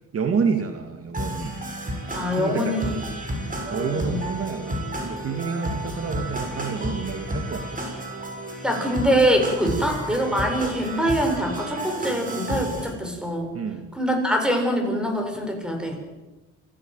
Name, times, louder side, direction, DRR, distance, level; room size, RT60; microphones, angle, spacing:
voice 1, 0.1-1.6 2.1-3.2 3.7-7.8 9.6-9.8 13.5-13.9, right 5 dB, 50° right, 6 dB, 2.3 m, -29 dB
sound 1, 1.1-12.9, equal, 25° right, 6.6 m, -32 dB
voice 2, 2.1-3.0 3.4-4.3 8.6-13.5 14.0-16.0, equal, 5° right, 3 dB, 7.6 m, -24 dB
27.5 x 16.5 x 8.1 m, 1.1 s
cardioid pair, 90°, 30 cm